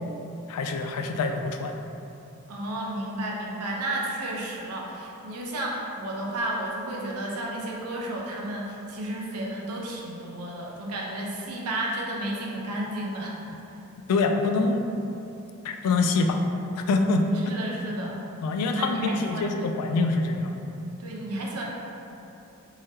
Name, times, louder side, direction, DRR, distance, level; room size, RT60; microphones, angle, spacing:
voice 1, 0.5-1.7 14.1-14.8 15.6-16.4 16.8-17.3 18.4-20.5, left 3 dB, 85° left, 5 dB, 0.3 m, -25 dB
voice 2, 2.5-13.4 13.7-13.8 17.5-18.2 18.8-19.5 21.0-21.6, right 1 dB, 85° right, -2 dB, 0.6 m, -32 dB
3.6 x 2.7 x 3.3 m, 2.9 s
head